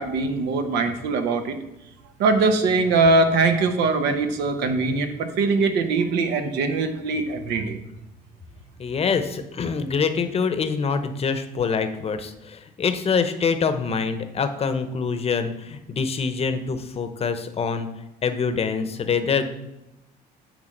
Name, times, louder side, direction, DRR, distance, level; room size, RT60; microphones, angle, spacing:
voice 1, 0.0-1.6 2.2-7.8, right 3 dB, 85° right, 6 dB, 1.0 m, -22 dB
voice 2, 8.8-17.9 18.2-19.5, left 5 dB, 35° left, 9 dB, 0.8 m, -25 dB
9.1 x 3.5 x 6.5 m, 0.92 s
cardioid pair, 110°, 17 cm